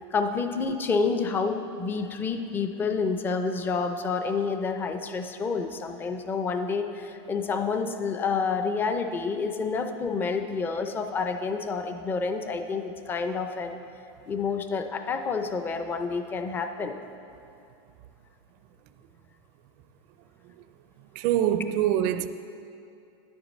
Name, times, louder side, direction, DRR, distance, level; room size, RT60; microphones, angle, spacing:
voice 1, 0.1-13.8 14.3-17.0, left 4 dB, 15° left, 0.4 m, -29 dB
voice 2, 21.2-22.3, right 11 dB, 45° right, 0.4 m, -24 dB
10.0 x 10.0 x 4.1 m
supercardioid pair, 155°, 15 cm